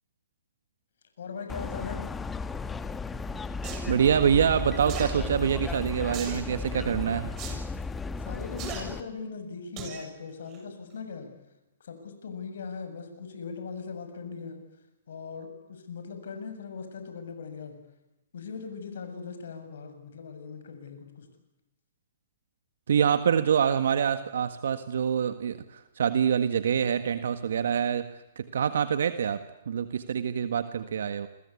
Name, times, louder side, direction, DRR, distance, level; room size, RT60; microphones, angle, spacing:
voice 1, 1.2-2.1 8.2-11.3 11.8-14.6 15.1-17.8 18.3-21.3, left 5 dB, 70° left, 7 dB, 7.3 m, -39 dB
sound 1, 1.5-9.0, left 4 dB, 10° left, 1.5 m, -35 dB
sound 2, 3.6-3.9 4.9-5.1 6.1-6.4 7.4-7.6 8.6-8.8 9.8-10.0 10.5-10.6, right 7 dB, 30° right, 7.3 m, -38 dB
voice 2, 3.9-7.3 22.9-31.3, right 8 dB, 70° right, 10 dB, 1.7 m, -26 dB
28.5 x 24.0 x 8.5 m, 0.97 s
hypercardioid pair, 135°, 0 cm